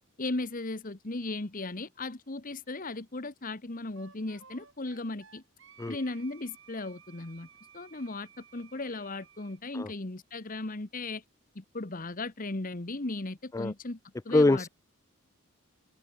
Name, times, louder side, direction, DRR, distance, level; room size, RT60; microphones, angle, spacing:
voice 1, 0.2-5.4 5.9-7.5 7.7-11.2 11.5-14.0 14.2-14.6, left 2 dB, 40° left, 1.2 m, -36 dB
Wind instrument woodwind instrument, 4.0-9.6, right 7 dB, 60° right, 6.0 m, -57 dB
voice 2, 14.3-14.7, left 2 dB, 15° left, 0.3 m, -24 dB
open air
head